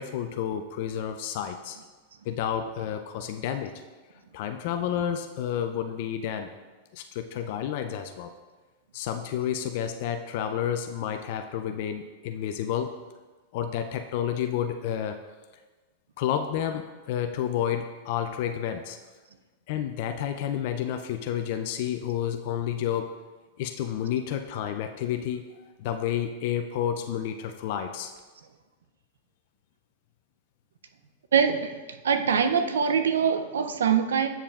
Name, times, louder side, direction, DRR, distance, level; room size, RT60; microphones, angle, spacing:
voice 1, 0.0-1.8 2.3-3.7 4.3-6.5 6.9-8.3 8.9-13.0 13.5-15.2 16.2-19.0 19.7-23.2 23.6-28.1, left 9 dB, 60° left, 6 dB, 0.4 m, -30 dB
voice 2, 31.3-31.7 32.0-34.3, right 7 dB, 85° right, 9 dB, 0.5 m, -23 dB
8.5 x 5.4 x 2.4 m, 1.3 s
hypercardioid pair, 115°, 0 cm